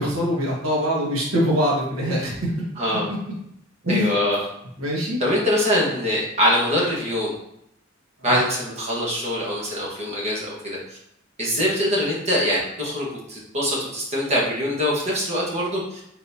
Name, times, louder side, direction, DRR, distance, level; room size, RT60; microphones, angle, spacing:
voice 1, 0.0-2.5 3.8-4.1 4.8-5.2 8.2-8.4, equal, 75° right, -5 dB, 1.4 m, -23 dB
voice 2, 2.8-3.1 3.9-4.4 5.2-7.3 8.2-10.8 11.4-16.0, equal, 35° right, -4 dB, 1.3 m, -23 dB
4.1 x 4.0 x 2.7 m, 0.76 s
head